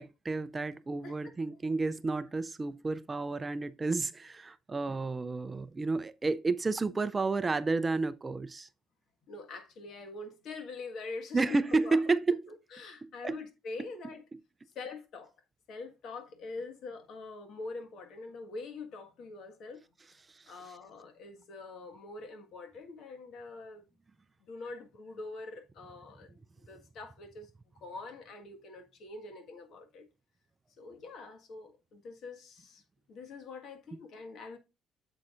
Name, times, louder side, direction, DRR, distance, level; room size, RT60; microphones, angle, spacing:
voice 1, 0.0-8.7 11.3-12.4 13.0-13.4 20.3-20.5, right 3 dB, 25° right, 0.4 m, -31 dB
voice 2, 1.0-1.4 9.3-12.2 12.5-14.2 14.7-15.3 15.7-19.8 20.4-23.9 24.4-27.5 27.8-30.1 30.8-32.8 33.1-34.6, left 3 dB, 60° left, 1.6 m, -44 dB
8.7 x 7.1 x 2.5 m
cardioid pair, 100°, 0 cm